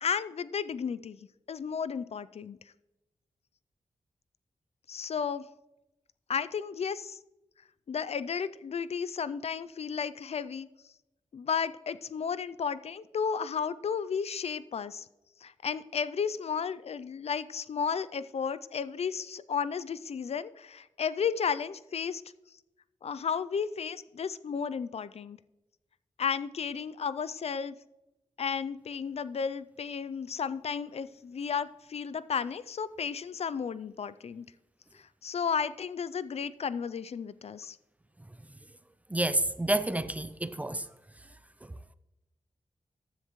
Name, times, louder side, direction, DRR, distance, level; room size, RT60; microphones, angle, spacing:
voice 1, 0.0-1.2 1.5-2.6 4.9-5.5 6.3-7.2 7.9-10.7 11.3-15.1 15.4-22.2 23.0-25.4 26.2-27.7 28.4-34.5 34.9-37.8, left 6 dB, 60° left, 0.4 m, -33 dB
voice 2, 39.1-40.8, right 1 dB, 10° right, 0.5 m, -29 dB
14.5 x 10.0 x 3.1 m
wide cardioid pair, 115°, 12 cm